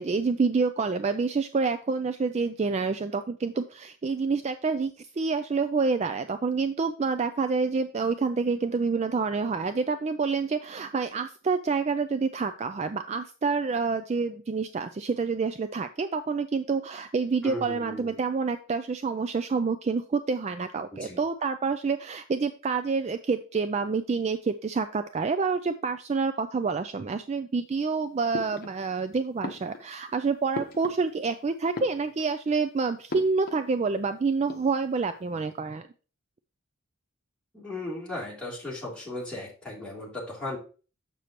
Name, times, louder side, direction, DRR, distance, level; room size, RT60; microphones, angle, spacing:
voice 1, 0.0-35.9, right 4 dB, 30° right, 10 dB, 0.3 m, -28 dB
voice 2, 17.4-18.1 20.9-21.2 37.5-40.6, left 1 dB, 5° left, -6 dB, 2.9 m, -36 dB
sound 1, 28.3-29.0 29.4-31.3 31.6-32.5 33.1-33.7 34.0-34.1 34.3-35.0, left 2 dB, 45° left, 0.9 m, -39 dB
7.5 x 6.7 x 2.9 m, 0.37 s
head